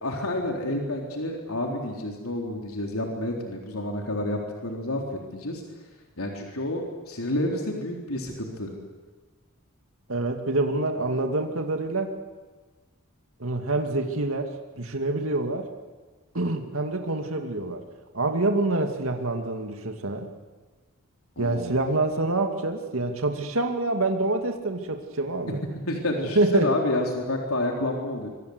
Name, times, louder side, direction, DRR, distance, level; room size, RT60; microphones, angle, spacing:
voice 1, 0.0-5.6 6.2-8.7 21.4-21.8 25.9-28.3, left 1 dB, 80° left, 1 dB, 3.8 m, -29 dB
voice 2, 10.1-12.2 13.4-15.7 16.3-17.8 18.1-20.3 21.4-25.6 26.4-26.7, right 2 dB, 70° right, 5 dB, 2.5 m, -26 dB
25.5 x 24.0 x 8.1 m, 1.3 s
head